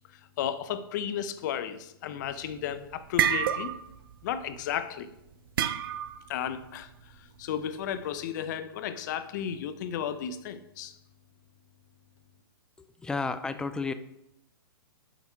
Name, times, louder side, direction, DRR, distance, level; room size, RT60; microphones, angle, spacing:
voice 1, 0.4-3.7 4.2-5.1 6.3-6.9 7.4-10.9, left 9 dB, 50° left, 12 dB, 0.7 m, -33 dB
sound 1, 2.3-2.6 2.9-4.0 4.3-4.6 5.6-6.3, right 9 dB, 60° right, 0.5 m, -28 dB
voice 2, 13.0-13.9, left 4 dB, 5° left, 11 dB, 0.4 m, -31 dB
6.8 x 6.0 x 4.6 m, 0.83 s
hypercardioid pair, 135°, 13 cm